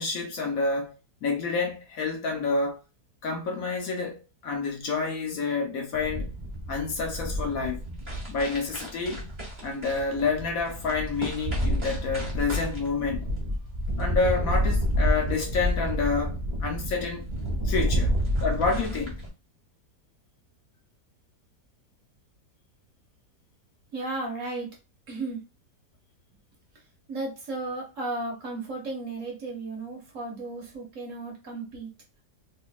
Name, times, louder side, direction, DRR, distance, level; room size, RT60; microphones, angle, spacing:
voice 1, 0.0-2.8 3.2-4.2 4.4-6.3 6.7-7.8 8.3-9.2 9.6-13.3 14.0-17.2 17.6-18.1 18.4-19.2, left 4 dB, 60° left, 1.1 m, -28 dB
sound 1, 5.9-19.3, equal, 15° right, 1.5 m, -29 dB
voice 2, 23.9-24.7 25.1-25.4 27.1-31.9, right 2 dB, 50° right, 1.2 m, -34 dB
3.8 x 3.1 x 2.4 m
omnidirectional pair, 1.8 m